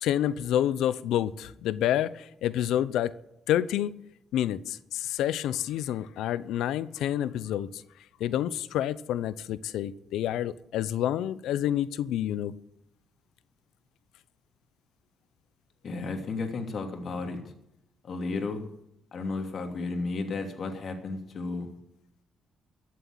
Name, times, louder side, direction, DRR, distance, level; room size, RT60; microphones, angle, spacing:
voice 1, 0.0-3.1 3.5-3.9 4.3-7.7 8.2-12.5, left 11 dB, 85° left, 0.7 m, -28 dB
voice 2, 15.8-17.5 18.0-18.6 19.1-21.7, left 3 dB, 55° left, 2.8 m, -33 dB
14.5 x 7.7 x 8.8 m
cardioid pair, 90°, 0 cm